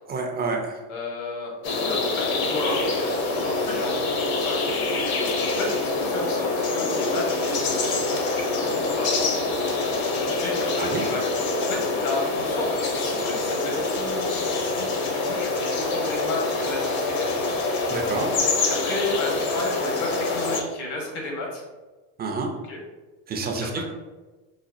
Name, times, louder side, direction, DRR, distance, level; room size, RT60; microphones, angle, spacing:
voice 1, 0.1-0.8 10.8-11.1 17.9-18.3 22.2-22.5 23.3-23.9, right 3 dB, 25° right, 2 dB, 0.3 m, -28 dB
voice 2, 0.9-1.5 1.8-9.4 10.3-11.2 11.6-17.5 18.6-21.6 22.6-22.8 23.4-23.8, left 2 dB, 70° left, -1 dB, 1.2 m, -33 dB
sound 1, 1.6-20.6, left 3 dB, 55° left, 0.7 m, -25 dB
4.0 x 2.2 x 2.5 m, 1.2 s
supercardioid pair, 110°, 44 cm